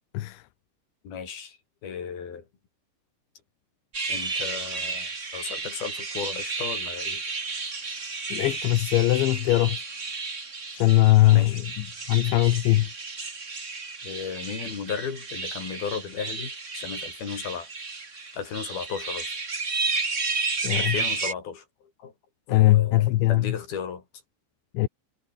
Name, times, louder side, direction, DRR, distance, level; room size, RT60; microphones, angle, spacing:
voice 1, 1.0-1.6 1.8-2.5 4.1-7.2 11.3-11.6 14.0-17.7 18.3-19.3 20.7-22.1 22.5-24.0, left 7 dB, 50° left, 5.8 m, -35 dB
sound 1, 3.9-21.3, right 4 dB, 30° right, 1.3 m, -32 dB
voice 2, 8.3-9.8 10.7-12.9 20.6-20.9 22.5-23.5 24.7-24.9, left 17 dB, 75° left, 3.2 m, -21 dB
omnidirectional pair, 5.6 m